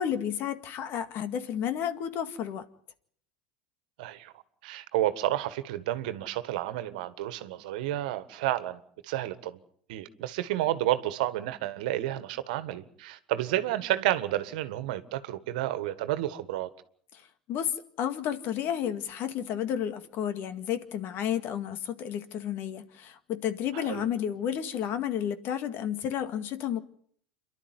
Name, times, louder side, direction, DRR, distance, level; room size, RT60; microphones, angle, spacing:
voice 1, 0.0-2.6 17.1-17.2 17.5-26.8, left 9 dB, 50° left, 2.0 m, -31 dB
voice 2, 4.0-4.3 4.6-9.6 9.9-16.7 23.7-24.0, right 14 dB, 70° right, 1.6 m, -31 dB
27.5 x 12.0 x 9.6 m
hypercardioid pair, 90°, 5 cm